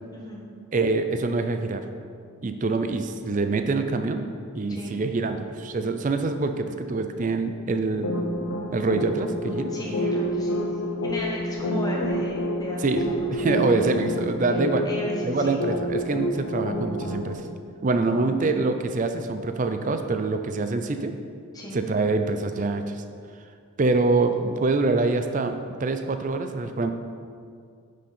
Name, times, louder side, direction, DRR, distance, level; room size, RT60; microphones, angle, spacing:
voice 1, 0.1-0.4 4.7-5.0 9.7-13.7 14.8-15.6 18.1-18.4 21.5-21.8, equal, 15° left, -3 dB, 1.3 m, -35 dB
voice 2, 0.7-1.8 2.4-4.3 4.6-8.1 8.7-9.7 12.8-14.8 15.2-17.4 17.8-21.1 21.7-23.0 23.8-26.9, right 3 dB, 35° right, 7 dB, 0.4 m, -25 dB
sound 1, 8.0-17.3, left 1 dB, 80° left, 0.9 m, -28 dB
9.3 x 6.3 x 4.4 m, 2.2 s
head